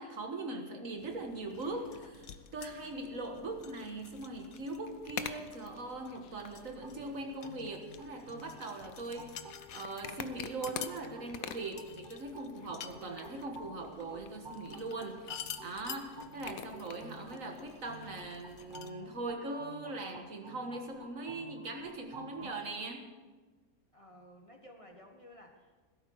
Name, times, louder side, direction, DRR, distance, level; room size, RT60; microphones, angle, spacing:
voice 1, 0.0-23.1, right 2 dB, 65° right, 4 dB, 1.8 m, -41 dB
sound 1, 1.0-18.9, left 8 dB, 75° left, 1.2 m, -47 dB
sound 2, 6.8-22.6, right 1 dB, 35° right, 1.9 m, -52 dB
voice 2, 13.0-13.6 23.9-25.8, left 1 dB, 25° left, 2 dB, 1.3 m, -56 dB
16.0 x 13.0 x 4.8 m, 1.3 s
omnidirectional pair, 1.5 m